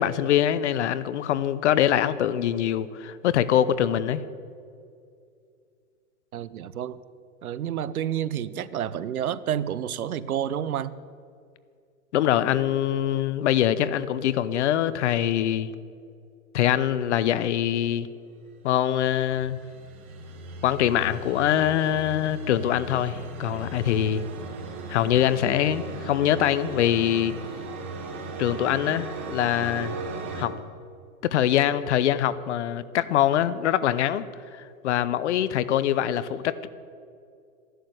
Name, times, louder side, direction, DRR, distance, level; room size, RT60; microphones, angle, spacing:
voice 1, 0.0-4.2 12.1-15.7 16.5-18.1 18.6-19.6 20.6-24.2 24.9-27.3 28.4-30.0 30.3-30.5 31.2-34.2 34.5-36.7, left 11 dB, 55° left, 16 dB, 0.9 m, -24 dB
voice 2, 6.3-7.0 7.4-11.0, right 10 dB, 80° right, 17 dB, 0.9 m, -29 dB
sound 1, 18.9-30.5, right 2 dB, 10° right, 0.3 m, -37 dB
13.0 x 11.5 x 7.9 m, 2.4 s
hypercardioid pair, 145°, 42 cm